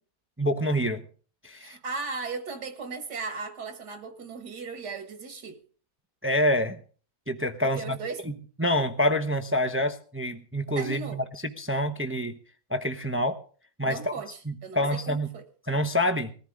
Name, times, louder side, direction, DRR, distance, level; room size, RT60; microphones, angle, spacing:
voice 1, 0.4-1.0 1.4-1.8 6.2-6.8 7.3-8.0 8.6-12.4 12.7-13.4 13.8-14.1 14.5-15.3 15.7-16.3, equal, 10° right, 0.6 m, -27 dB
voice 2, 1.6-5.6 7.6-8.2 10.8-11.2 13.8-15.4, right 4 dB, 75° right, 2.2 m, -37 dB
20.0 x 14.5 x 3.6 m
omnidirectional pair, 1.8 m